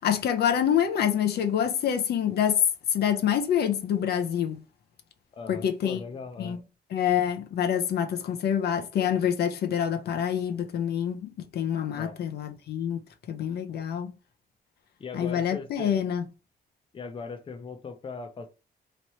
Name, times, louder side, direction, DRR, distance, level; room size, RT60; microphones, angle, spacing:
voice 1, 0.0-2.6 2.9-4.6 5.5-6.0 6.4-6.6 6.9-13.0 13.3-14.1 15.1-16.2, left 9 dB, 70° left, 0.6 m, -26 dB
voice 2, 5.3-6.6 11.9-12.2 15.0-15.9 16.9-18.5, left 4 dB, 30° left, 0.7 m, -39 dB
3.1 x 2.9 x 4.3 m
cardioid pair, 115°, 17 cm